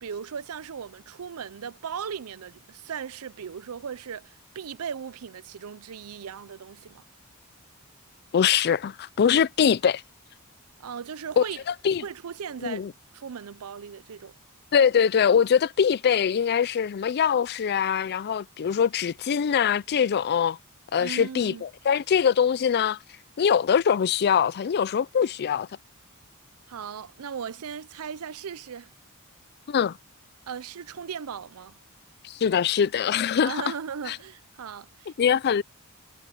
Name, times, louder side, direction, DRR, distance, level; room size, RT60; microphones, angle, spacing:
voice 1, 0.0-7.0 10.8-11.6 12.0-12.9 13.1-14.4 21.0-21.6 26.7-28.9 30.5-31.8 33.4-35.1, right 7 dB, 75° right, 0.5 m, -37 dB
voice 2, 8.3-10.0 11.4-11.5 11.8-12.0 12.6-12.9 14.7-20.6 20.9-23.0 23.4-25.7 29.7-30.0 32.2-33.6 34.1-34.2 35.2-35.6, left 7 dB, 50° left, 0.4 m, -23 dB
head